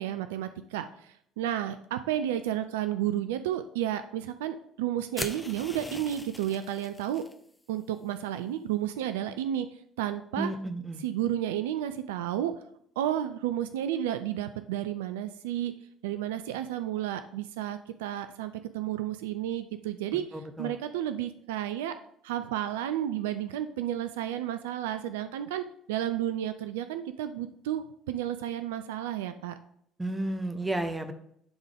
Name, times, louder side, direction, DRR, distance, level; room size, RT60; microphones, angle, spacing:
voice 1, 0.0-7.2 7.7-10.5 11.0-12.5 13.0-15.7 16.0-21.9 22.2-29.5, right 11 dB, 75° right, 10 dB, 0.3 m, -32 dB
sound 1, 5.1-7.3, left 2 dB, 15° left, 0.8 m, -40 dB
voice 2, 10.4-11.0 20.6-20.7 30.0-31.1, right 1 dB, 15° right, 7 dB, 0.9 m, -32 dB
10.5 x 3.7 x 3.4 m, 0.69 s
figure-of-eight pair, 55°, 0 cm